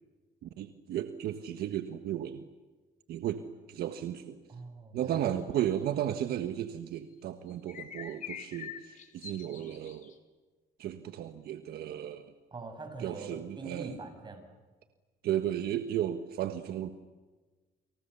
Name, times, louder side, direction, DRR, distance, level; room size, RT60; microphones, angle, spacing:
voice 1, 0.4-2.4 3.1-3.4 3.7-4.4 4.9-10.1 10.8-12.3 13.0-14.0 15.2-16.9, right 11 dB, 70° right, 8 dB, 1.5 m, -34 dB
voice 2, 4.5-5.5 12.5-14.4, right 3 dB, 25° right, 5 dB, 8.0 m, -44 dB
sound 1, 7.5-10.1, left 7 dB, 50° left, 3.4 m, -44 dB
30.0 x 27.0 x 7.1 m, 1.3 s
cardioid pair, 110°, 17 cm